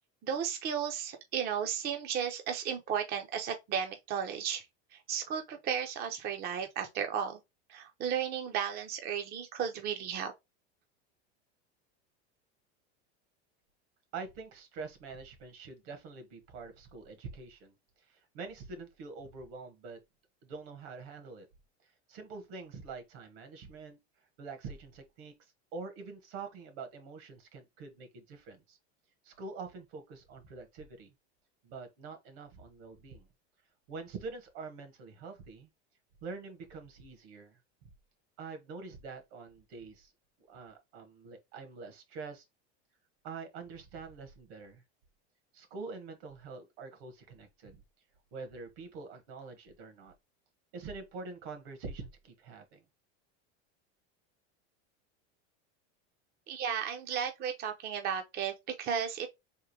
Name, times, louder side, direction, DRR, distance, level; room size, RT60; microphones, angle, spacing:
voice 1, 0.2-4.7 4.9-7.4 7.7-10.3 56.5-59.3, right 8 dB, 30° right, 0.5 m, -34 dB
voice 2, 14.1-17.7 18.1-20.0 20.4-21.5 21.8-24.0 24.4-25.3 25.7-28.8 29.2-31.1 31.6-33.2 33.9-35.7 36.2-37.6 38.4-40.1 40.5-42.4 43.2-44.8 45.5-47.8 48.3-50.1 50.7-52.8, right 4 dB, 65° right, 1.5 m, -45 dB
3.7 x 2.6 x 4.6 m
supercardioid pair, 140°, 33 cm